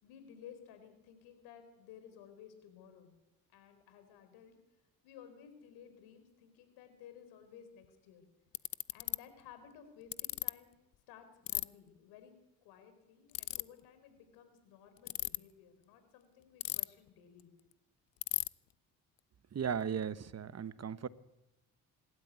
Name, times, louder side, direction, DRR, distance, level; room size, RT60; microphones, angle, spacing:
voice 1, 0.0-3.1 3.5-4.6 5.0-8.2 8.9-10.8 11.1-12.3 12.6-17.5 20.6-20.7, left 8 dB, 85° left, 4.5 m, -56 dB
Ratchet pawl, 7.8-7.9 8.5-9.2 10.1-10.5 11.5-11.6 13.3-13.6 15.0-15.4 16.6-17.1 17.4-17.5 17.7-17.8 18.2-18.5, left 15 dB, 65° left, 0.8 m, -34 dB
voice 2, 19.5-21.1, right 7 dB, 40° right, 1.1 m, -36 dB
26.0 x 12.5 x 9.6 m
supercardioid pair, 60°, 38 cm